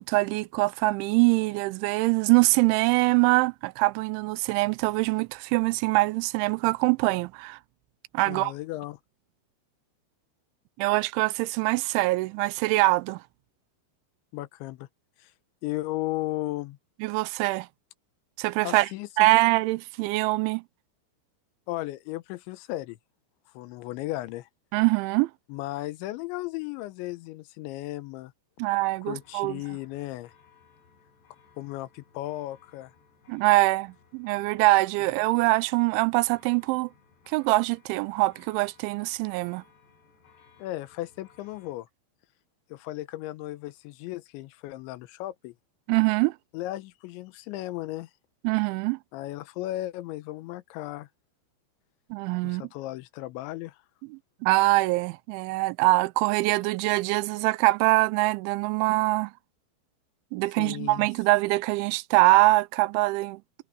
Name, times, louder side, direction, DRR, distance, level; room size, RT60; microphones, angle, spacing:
voice 1, 0.0-7.6 8.1-8.5 10.8-13.2 17.0-17.7 18.4-18.9 19.2-20.6 24.7-25.3 28.6-29.6 33.3-36.9 37.3-39.6 45.9-46.3 48.4-49.0 52.1-52.6 54.1-59.3 60.3-63.4, right 22 dB, 85° right, 2.9 m, -23 dB
voice 2, 8.3-9.0 14.3-14.9 15.2-15.3 15.6-16.8 18.6-19.3 21.7-23.0 23.5-24.5 25.5-28.3 29.0-30.3 31.6-32.9 40.6-41.9 42.7-45.5 46.5-48.1 49.1-51.1 52.4-53.8 60.6-61.1, left 17 dB, 80° left, 3.1 m, -35 dB
sound 1, 28.8-41.7, left 6 dB, 60° left, 8.4 m, -60 dB
omnidirectional pair, 5.6 m